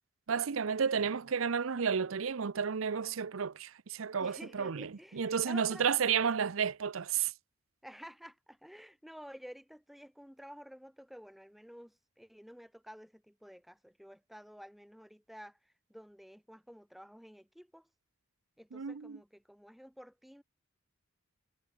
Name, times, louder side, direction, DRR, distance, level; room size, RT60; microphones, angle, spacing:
voice 1, 0.3-7.3 18.7-19.2, right 6 dB, 80° right, 0.6 m, -32 dB
voice 2, 4.2-5.9 7.8-17.9 18.6-20.4, equal, ahead, 1.1 m, -52 dB
head